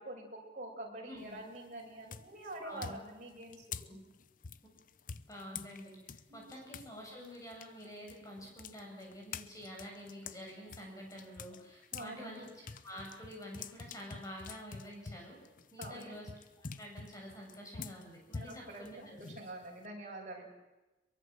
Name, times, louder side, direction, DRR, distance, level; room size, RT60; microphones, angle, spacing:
voice 1, 0.0-3.7 6.3-6.6 11.5-11.6 11.9-12.4 15.8-16.2 18.3-20.5, right 1 dB, 45° right, -2 dB, 7.1 m, -46 dB
voice 2, 1.0-1.4 2.6-3.0 3.7-4.0 5.3-12.5 12.8-15.4 15.7-16.3 16.8-19.2, equal, 20° left, -1 dB, 7.9 m, -48 dB
sound 1, 1.2-1.6 2.1-6.9 7.2-12.1 12.5-19.9, left 5 dB, 50° left, 0.7 m, -47 dB
23.5 x 23.0 x 7.8 m, 1.1 s
head